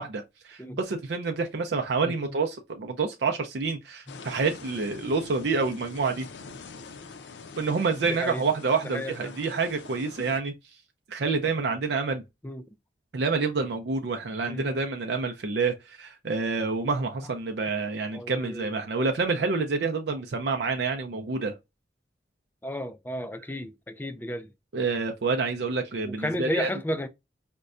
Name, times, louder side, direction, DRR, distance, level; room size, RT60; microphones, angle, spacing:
voice 1, 0.0-6.3 7.6-10.5 11.1-12.2 13.1-21.5 24.7-26.7, right 4 dB, 75° right, 0.5 m, -28 dB
voice 2, 2.0-2.3 8.1-8.5 8.9-9.4 12.4-12.6 14.5-14.8 18.1-18.8 22.6-24.5 26.1-27.1, equal, 10° left, 0.3 m, -33 dB
sound 1, 4.1-10.4, left 4 dB, 85° left, 0.5 m, -45 dB
5.1 x 2.2 x 2.4 m
head